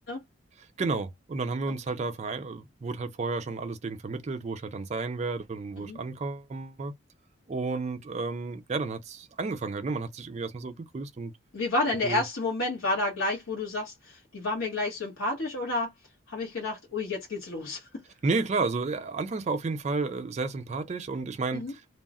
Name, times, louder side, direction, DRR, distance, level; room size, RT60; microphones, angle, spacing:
voice 1, 0.6-6.9 7.5-11.3 12.0-12.2 18.2-22.0, right 3 dB, 35° right, 0.3 m, -32 dB
voice 2, 11.5-15.9 16.3-17.9 21.5-21.7, left 2 dB, 80° left, 1.0 m, -30 dB
2.3 x 2.0 x 3.5 m
head